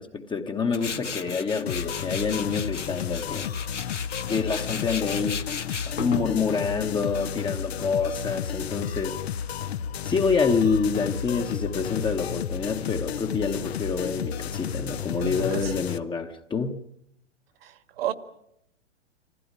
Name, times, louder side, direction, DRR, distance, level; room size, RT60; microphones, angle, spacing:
voice 1, 0.0-3.5 4.3-5.5 6.0-9.2 10.0-16.8, left 5 dB, 15° left, 1.2 m, -27 dB
Tools, 0.7-9.6, left 5 dB, 85° left, 1.5 m, -36 dB
sound 1, 1.7-16.0, left 8 dB, 60° left, 1.1 m, -32 dB
voice 2, 15.2-15.8 17.6-18.1, right 7 dB, 55° right, 2.0 m, -32 dB
26.5 x 15.5 x 9.6 m
figure-of-eight pair, 110°, 35 cm